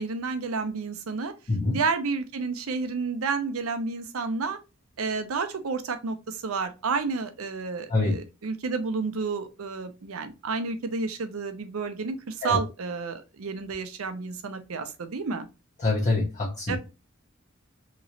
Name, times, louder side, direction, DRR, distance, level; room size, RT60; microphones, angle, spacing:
voice 1, 0.0-1.3 1.7-4.6 5.0-15.5 16.7-16.8, right 4 dB, 85° right, 0.6 m, -30 dB
voice 2, 1.5-1.8 7.9-8.2 12.4-12.6 15.8-16.8, left 2 dB, 35° left, 0.8 m, -25 dB
3.0 x 2.9 x 2.6 m
head